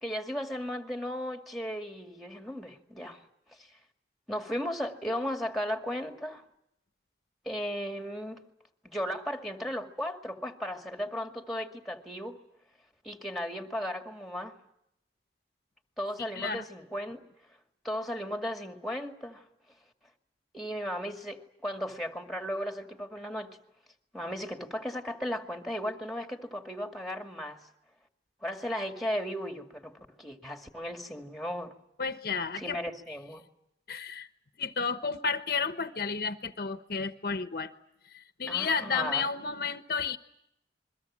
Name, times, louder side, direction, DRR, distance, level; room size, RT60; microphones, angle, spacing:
voice 1, 0.0-3.2 3.5-3.7 4.3-6.4 7.4-8.4 8.8-12.4 13.0-14.6 16.0-17.3 17.8-19.5 20.5-23.6 24.1-27.6 28.4-31.7 32.5-33.4 38.5-39.3, equal, ahead, 2.2 m, -36 dB
voice 2, 32.0-32.8 33.9-34.3 34.6-37.7 38.1-40.2, left 5 dB, 55° left, 1.1 m, -32 dB
28.5 x 22.5 x 7.5 m
head